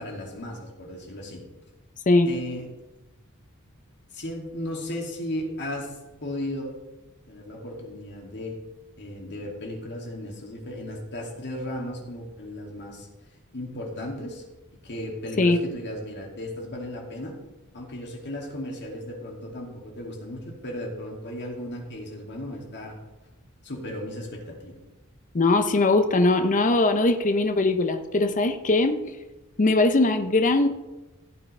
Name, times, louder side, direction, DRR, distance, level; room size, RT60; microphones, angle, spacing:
voice 1, 0.0-1.4 2.3-2.7 4.1-6.8 7.3-8.5 9.0-13.1 13.5-14.4 14.8-17.3 17.7-22.9 23.6-24.8, left 1 dB, 55° left, -1 dB, 2.6 m, -35 dB
voice 2, 25.3-29.0 29.6-30.7, left 2 dB, 35° left, 7 dB, 0.7 m, -20 dB
16.0 x 8.7 x 3.4 m, 1.1 s
head